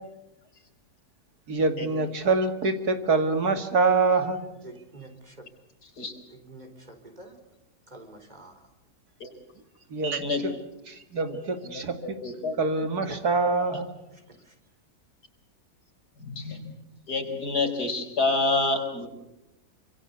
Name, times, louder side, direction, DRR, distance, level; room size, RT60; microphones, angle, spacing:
voice 1, 1.5-4.4 9.9-10.3 10.9-12.2 12.6-13.9, right 3 dB, 80° right, 8 dB, 2.8 m, -25 dB
voice 2, 4.6-5.5 6.3-7.4 7.9-8.7 14.1-14.6, right 2 dB, 25° right, 5 dB, 4.5 m, -48 dB
voice 3, 11.7-12.5 13.7-13.8 16.2-16.7 17.1-19.1, left 3 dB, 85° left, 5 dB, 5.0 m, -28 dB
27.0 x 26.0 x 8.2 m, 0.88 s
omnidirectional pair, 1.6 m